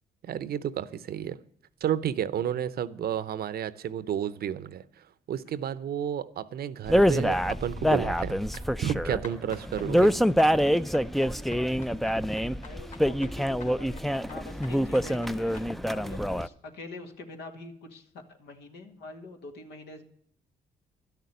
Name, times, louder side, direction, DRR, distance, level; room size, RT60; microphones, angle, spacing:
voice 1, 0.2-1.4 1.8-10.2, right 9 dB, 65° right, 0.7 m, -32 dB
sound 1, 6.9-16.5, equal, ahead, 0.4 m, -25 dB
sound 2, 8.2-15.7, left 4 dB, 45° left, 2.9 m, -50 dB
voice 2, 12.6-15.6 15.9-18.0 18.4-20.0, left 2 dB, 85° left, 1.9 m, -45 dB
12.0 x 6.8 x 9.3 m
cardioid pair, 75°, 17 cm